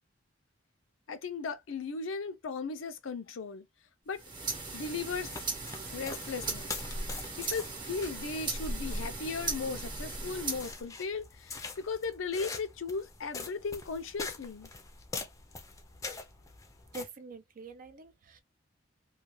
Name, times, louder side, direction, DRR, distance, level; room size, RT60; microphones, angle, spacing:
voice 1, 1.1-3.6 4.1-4.2 4.7-5.3 5.9-6.6 7.4-14.7, left 4 dB, 80° left, 0.5 m, -37 dB
sound 1, 4.1-10.8, right 3 dB, 25° right, 0.8 m, -38 dB
sound 2, 5.3-17.0, left 2 dB, 15° left, 0.5 m, -42 dB
voice 2, 16.9-18.4, right 2 dB, 45° right, 0.4 m, -45 dB
2.3 x 2.3 x 3.0 m
head